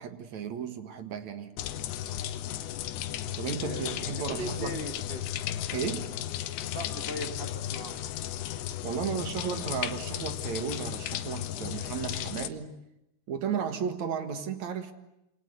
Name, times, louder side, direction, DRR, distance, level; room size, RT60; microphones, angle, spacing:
voice 1, 0.0-1.5 3.4-4.8 5.7-6.1 8.8-12.8 13.3-14.9, right 7 dB, 55° right, 9 dB, 2.6 m, -34 dB
sound 1, 1.6-12.5, left 12 dB, 85° left, 3.4 m, -35 dB
voice 2, 3.5-5.4 6.7-8.0, equal, 30° left, 6 dB, 1.0 m, -39 dB
28.0 x 25.5 x 8.1 m, 0.88 s
omnidirectional pair, 4.8 m